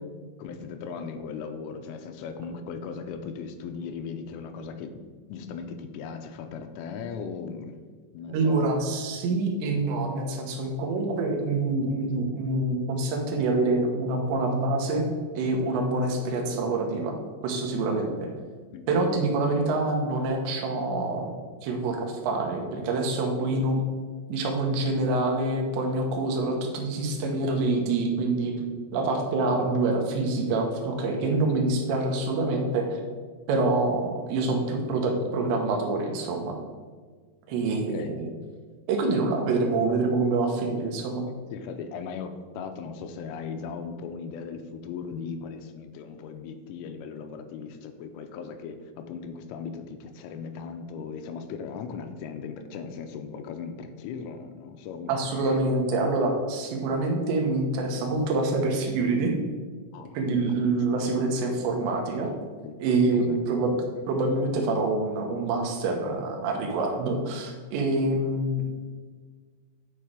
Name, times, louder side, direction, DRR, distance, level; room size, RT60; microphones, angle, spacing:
voice 1, 0.4-4.9 5.3-7.8 8.1-8.8 18.7-19.0 31.0-31.4 37.7-38.1 41.5-55.6 59.9-60.2 60.4-60.6 62.6-62.8 63.2-63.5, left 6 dB, 90° left, 7 dB, 3.2 m, -38 dB
voice 2, 8.3-15.1 15.3-17.1 17.4-18.3 18.9-21.3 21.6-23.8 24.3-28.5 28.9-32.9 33.5-36.6 37.5-38.3 38.9-41.2 55.1-59.3 60.1-62.3 62.8-63.8 64.1-68.7, right 2 dB, 75° right, 2 dB, 3.2 m, -26 dB
9.9 x 4.7 x 5.0 m, 1.5 s
omnidirectional pair, 5.7 m